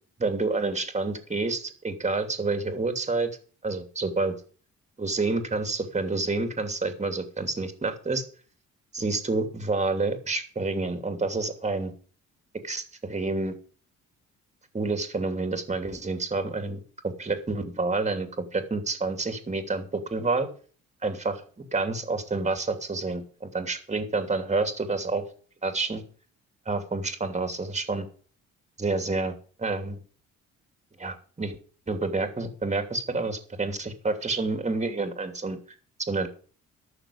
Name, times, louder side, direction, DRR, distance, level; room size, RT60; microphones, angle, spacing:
voice 1, 0.2-3.3 3.6-4.3 5.0-8.2 8.9-11.9 12.6-13.5 14.7-20.5 21.0-21.4 21.7-25.2 25.6-26.0 26.7-28.1 28.8-29.3 29.6-30.0 31.0-31.6 31.9-35.6 36.0-36.3, right 3 dB, 25° right, 8 dB, 2.9 m, -28 dB
12.0 x 6.9 x 8.6 m, 0.42 s
cardioid pair, 90°, 30 cm